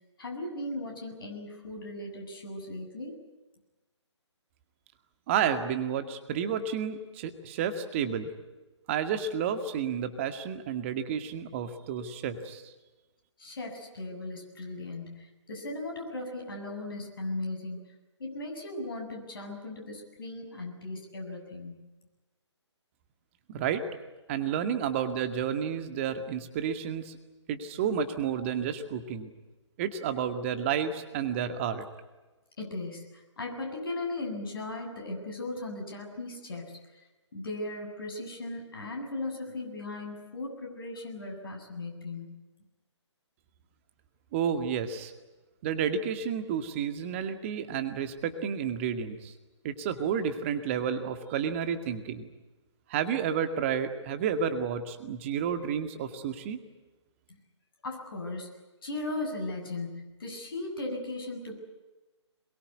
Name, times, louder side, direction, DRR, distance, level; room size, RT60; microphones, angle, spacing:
voice 1, 0.2-3.2 13.4-17.8 18.2-21.9 32.6-37.0 37.3-42.4 57.3-57.4 57.8-58.5 58.8-61.6, left 2 dB, 50° left, 2 dB, 7.5 m, -37 dB
voice 2, 5.3-8.3 8.9-12.6 23.5-23.8 24.3-27.2 27.5-29.3 29.8-31.8 44.3-45.1 45.6-49.3 49.6-52.3 52.9-56.6, right 7 dB, 25° right, 9 dB, 2.1 m, -31 dB
22.5 x 22.5 x 9.5 m, 1.1 s
figure-of-eight pair, 140°, 15 cm